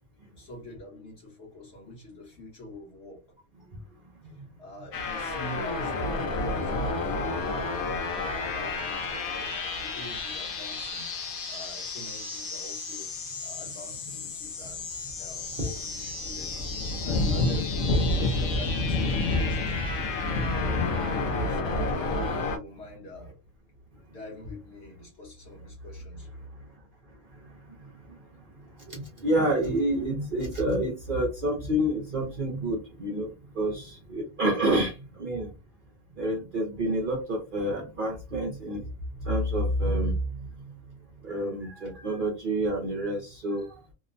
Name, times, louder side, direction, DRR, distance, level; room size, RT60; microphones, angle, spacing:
voice 1, 0.4-3.2 4.6-7.4 8.2-13.1 13.4-14.9 15.2-16.5 17.0-19.7 20.5-23.4 24.1-26.3, left 1 dB, 55° left, 1.2 m, -44 dB
sound 1, 4.9-22.6, left 3 dB, 90° left, 1.2 m, -33 dB
sound 2, 15.2-15.4 15.6-21.9, left 2 dB, 70° left, 0.9 m, -28 dB
voice 2, 28.9-34.9 35.2-35.5 36.2-38.8 39.3-40.2 41.2-43.7, right 1 dB, 50° right, 0.6 m, -28 dB
2.9 x 2.1 x 2.5 m
omnidirectional pair, 1.4 m